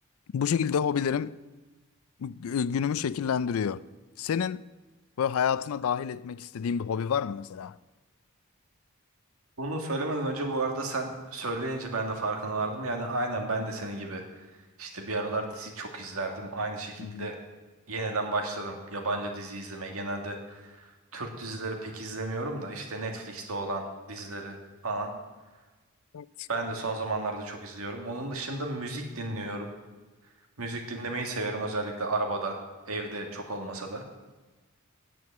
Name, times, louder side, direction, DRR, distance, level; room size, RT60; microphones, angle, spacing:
voice 1, 0.3-1.3 2.2-3.8 4.2-4.7 5.2-7.8 17.0-17.3 26.1-26.5, left 7 dB, 80° left, 0.4 m, -29 dB
voice 2, 9.6-14.2 14.8-17.4 17.9-24.6 24.8-25.1 26.5-29.7 30.6-34.0, right 2 dB, 85° right, 1.8 m, -33 dB
9.3 x 7.8 x 7.3 m
head